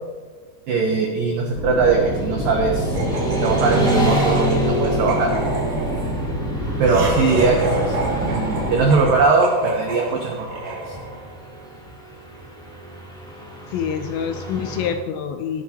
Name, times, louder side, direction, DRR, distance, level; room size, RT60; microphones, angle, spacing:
voice 1, 0.7-2.9 3.4-5.3 6.8-7.9 8.2-11.0, right 4 dB, 85° right, 1 dB, 1.9 m, -20 dB
sound 1, 1.5-9.1, right 1 dB, 20° left, 3.8 m, -27 dB
Motorcycle / Traffic noise roadway noise, 1.8-14.9, equal, ahead, 1.4 m, -28 dB
Laughter, 2.9-11.3, right 2 dB, 45° right, 2.8 m, -29 dB
voice 2, 13.7-15.6, left 7 dB, 80° left, 7 dB, 2.6 m, -26 dB
17.0 x 9.9 x 2.9 m, 1.5 s
omnidirectional pair, 5.5 m